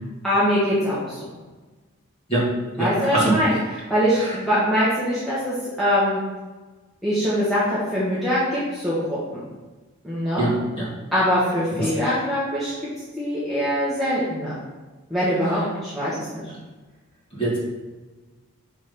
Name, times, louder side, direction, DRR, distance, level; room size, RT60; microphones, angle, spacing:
voice 1, 0.2-1.2 2.8-3.5 3.9-6.2 7.0-9.4 10.0-10.5 11.1-12.7 13.2-14.6 15.1-16.4, equal, ahead, -11 dB, 1.4 m, -23 dB
voice 2, 2.8-3.6 4.1-4.4 10.4-10.9 11.8-11.9 17.3-17.6, right 2 dB, 25° left, -7 dB, 2.1 m, -23 dB
5.9 x 3.8 x 5.0 m, 1.2 s
head